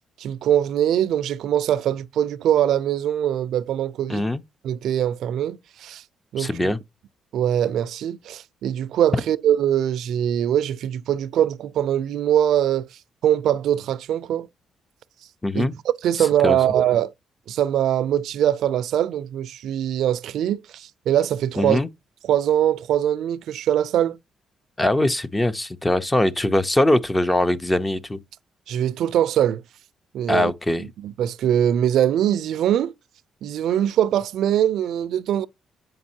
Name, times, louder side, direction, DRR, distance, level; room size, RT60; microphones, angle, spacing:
voice 1, 0.2-4.2 4.6-6.0 6.3-6.7 7.3-12.9 13.2-14.5 15.6-15.7 16.0-17.1 17.5-21.8 22.3-24.2 28.7-29.6 30.1-30.5 30.8-32.9 33.4-35.5, right 10 dB, 75° right, 0.4 m, -22 dB
voice 2, 4.1-4.4 6.4-6.8 15.4-15.7 16.2-16.6 21.6-21.9 24.8-28.2 30.3-30.9, left 1 dB, 10° left, 0.5 m, -22 dB
7.7 x 5.2 x 2.7 m
cardioid pair, 135°, 0 cm